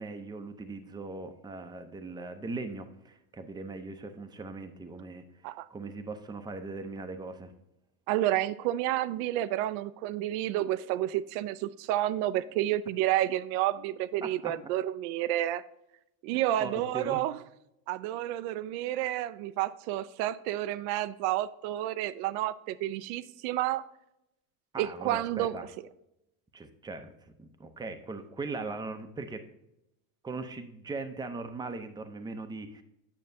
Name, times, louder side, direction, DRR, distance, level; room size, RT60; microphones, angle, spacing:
voice 1, 0.0-5.2 5.7-7.5 14.2-14.6 16.6-17.2 24.7-25.6 26.5-27.1 27.4-29.5 30.2-32.8, right 3 dB, 10° right, 0.6 m, -39 dB
voice 2, 8.1-15.6 16.2-17.4 17.9-23.8 24.8-25.6, right 14 dB, 70° right, 0.6 m, -30 dB
9.0 x 6.4 x 2.7 m
supercardioid pair, 100°, 45 cm